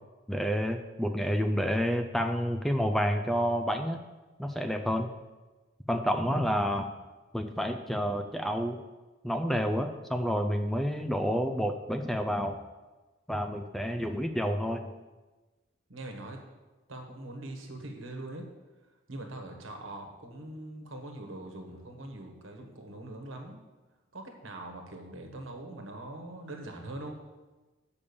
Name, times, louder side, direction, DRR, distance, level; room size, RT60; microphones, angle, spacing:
voice 1, 0.3-4.0 4.4-5.1 5.9-6.9 7.3-8.8 9.2-12.6 13.3-14.8, equal, ahead, 5 dB, 0.4 m, -29 dB
voice 2, 15.9-16.4 16.9-18.4 19.1-23.6 24.1-27.1, right 1 dB, 85° right, 3 dB, 1.3 m, -42 dB
6.8 x 5.2 x 7.0 m, 1.2 s
head